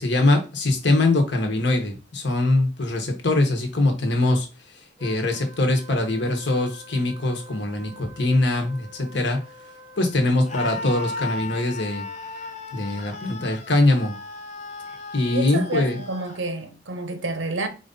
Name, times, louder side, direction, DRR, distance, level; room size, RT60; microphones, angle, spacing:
voice 1, 0.0-9.7 10.0-12.1 12.7-14.2 15.1-16.0, left 2 dB, 65° left, 1.1 m, -22 dB
Wind instrument woodwind instrument, 5.0-11.3, left 1 dB, 20° right, 0.5 m, -47 dB
Screaming, 10.5-16.4, left 3 dB, 35° left, 0.6 m, -35 dB
voice 2, 15.3-17.7, right 2 dB, 80° right, 0.8 m, -29 dB
4.6 x 2.6 x 3.8 m
head